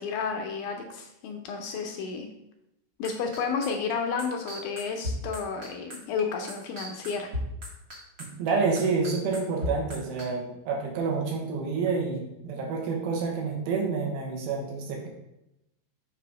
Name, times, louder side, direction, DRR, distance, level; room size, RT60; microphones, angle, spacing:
voice 1, 0.0-2.3 3.0-7.3, left 5 dB, 80° left, 3 dB, 1.8 m, -31 dB
sound 1, 3.0-10.2, left 1 dB, 55° right, 1.0 m, -34 dB
voice 2, 8.2-15.1, right 4 dB, 85° right, 0 dB, 3.1 m, -28 dB
7.5 x 3.4 x 4.9 m, 0.86 s
omnidirectional pair, 4.2 m